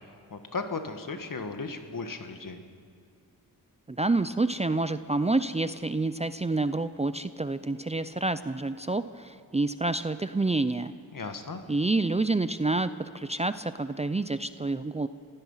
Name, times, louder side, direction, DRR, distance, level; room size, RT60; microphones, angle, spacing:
voice 1, 0.3-2.6 11.1-11.6, left 4 dB, 55° left, 7 dB, 1.8 m, -36 dB
voice 2, 3.9-10.9 11.7-15.1, right 2 dB, 15° right, 12 dB, 0.5 m, -28 dB
28.5 x 16.5 x 5.7 m, 2.4 s
cardioid pair, 70°, 39 cm